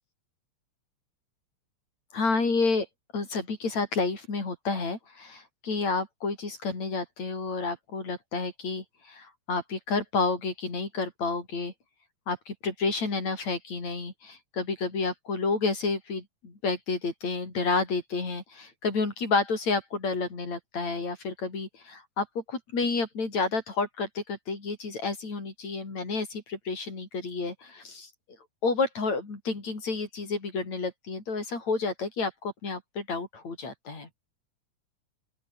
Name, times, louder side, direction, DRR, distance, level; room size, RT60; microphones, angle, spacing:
voice 1, 2.1-2.9 3.1-11.7 12.3-28.1 28.6-34.1, left 4 dB, 55° left, 7.5 m, -30 dB
open air
omnidirectional pair, 3.7 m